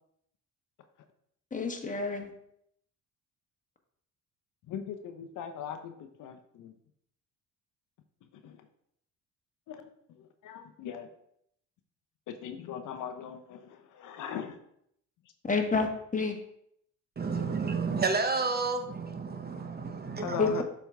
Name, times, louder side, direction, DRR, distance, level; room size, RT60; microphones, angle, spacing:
voice 1, 1.5-2.3 15.4-16.4 20.4-20.6, left 4 dB, 20° left, 4 dB, 1.3 m, -29 dB
voice 2, 4.7-6.7 8.4-8.6 9.7-9.9 10.2-11.1 12.3-14.6 20.2-20.6, left 8 dB, 60° left, 7 dB, 0.8 m, -39 dB
voice 3, 17.2-20.6, right 4 dB, 30° right, 7 dB, 0.8 m, -31 dB
7.0 x 4.6 x 3.5 m, 0.72 s
supercardioid pair, 70°, 34 cm